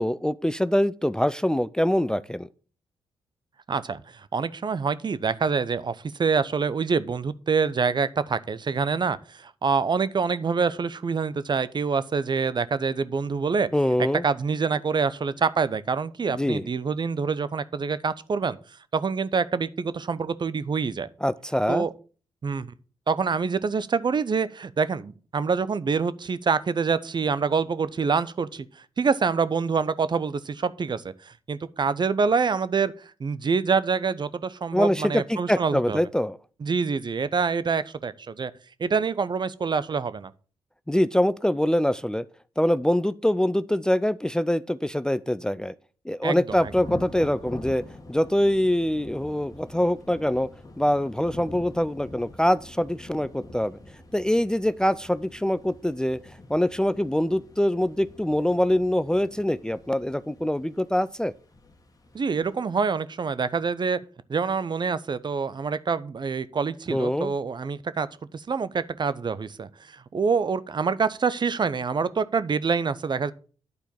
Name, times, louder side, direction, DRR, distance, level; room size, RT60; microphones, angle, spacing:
voice 1, 0.0-2.5 13.7-14.3 16.3-16.7 21.2-21.9 34.7-36.4 40.9-42.2 42.6-45.7 46.1-47.8 48.1-50.5 50.8-53.8 54.1-56.2 56.5-61.3 66.9-67.3, left 1 dB, 5° left, 0.4 m, -24 dB
voice 2, 3.7-13.7 14.2-18.6 18.9-21.1 21.7-21.9 22.4-22.7 23.1-28.7 29.0-36.0 36.6-38.5 38.8-40.3 46.2-46.7 62.1-64.0 64.3-68.1 68.3-73.3, right 5 dB, 40° right, 0.7 m, -26 dB
Thunder / Rain, 46.5-62.7, left 1 dB, 30° left, 1.7 m, -45 dB
9.5 x 4.5 x 6.8 m
supercardioid pair, 45°, 11 cm